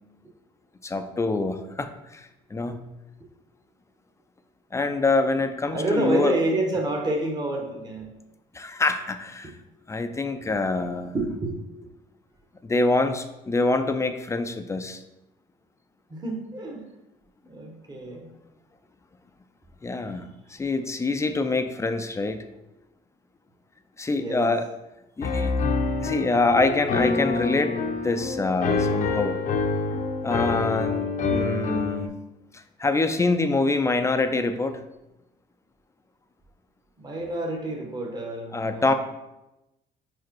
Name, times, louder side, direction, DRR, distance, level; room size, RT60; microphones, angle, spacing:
voice 1, 0.8-2.8 4.7-6.3 8.5-9.5 9.9-11.1 12.6-15.0 19.8-22.4 24.0-24.7 25.2-25.5 26.0-27.7 28.0-29.4 30.2-32.1 32.5-34.8 38.5-38.9, left 3 dB, 15° left, 8 dB, 0.5 m, -25 dB
voice 2, 5.7-8.1 10.8-11.8 16.1-16.9 17.5-18.3 24.2-24.5 37.0-38.9, right 2 dB, 25° right, 1 dB, 1.2 m, -28 dB
Piano, 25.2-32.1, left 4 dB, 50° left, 0.8 m, -26 dB
5.0 x 4.7 x 4.6 m, 0.94 s
cardioid pair, 110°, 17 cm